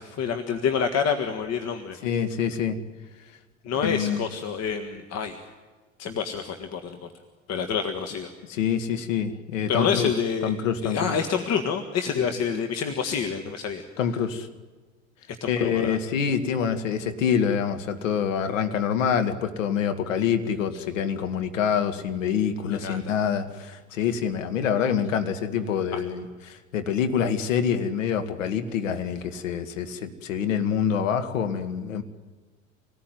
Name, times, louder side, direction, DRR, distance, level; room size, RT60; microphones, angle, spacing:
voice 1, 0.0-2.0 3.6-5.4 6.0-7.1 7.5-8.3 9.7-10.5 10.8-13.8 15.3-16.0 20.7-20.8 22.7-23.1 25.9-26.0, left 6 dB, 40° left, 7 dB, 1.9 m, -28 dB
voice 2, 2.0-2.8 3.8-4.2 8.5-10.1 10.4-11.1 14.0-14.5 15.5-32.0, left 7 dB, 65° left, 8 dB, 2.2 m, -26 dB
27.0 x 19.0 x 9.5 m, 1.3 s
figure-of-eight pair, 70°, 40 cm